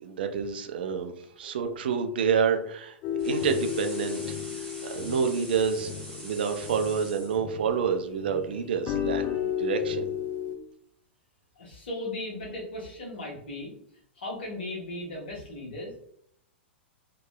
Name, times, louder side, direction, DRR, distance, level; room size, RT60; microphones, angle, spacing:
voice 1, 0.0-4.4 4.8-5.9 6.2-9.2 9.6-10.1, right 6 dB, 55° right, 6 dB, 0.3 m, -28 dB
sound 1, 3.0-7.9 8.2-10.6, left 9 dB, 30° left, 0.3 m, -33 dB
sound 2, 3.2-7.4, equal, 5° left, 1.1 m, -44 dB
voice 2, 11.6-13.7 14.2-16.1, left 1 dB, 60° left, -2 dB, 1.0 m, -37 dB
2.7 x 2.2 x 2.2 m, 0.68 s
figure-of-eight pair, 100°, 6 cm